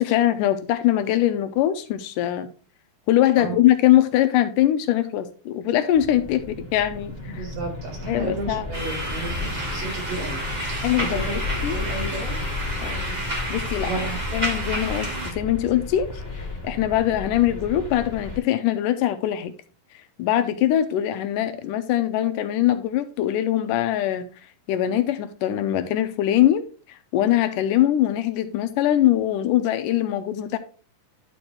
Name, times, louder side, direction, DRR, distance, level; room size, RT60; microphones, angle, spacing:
voice 1, 0.0-2.5 3.1-7.4 8.1-8.7 10.8-11.2 11.6-11.8 12.8-13.2 13.5-13.9 14.3-16.1 16.6-19.5 20.2-24.3 24.7-30.6, left 12 dB, 85° left, 2.2 m, -22 dB
sound 1, 5.9-18.4, left 3 dB, 5° left, 2.5 m, -33 dB
voice 2, 7.3-11.4 11.7-12.4 13.8-14.2, right 3 dB, 75° right, 4.2 m, -33 dB
sound 2, 8.7-15.3, right 1 dB, 25° right, 0.9 m, -31 dB
11.5 x 4.4 x 3.1 m
omnidirectional pair, 3.8 m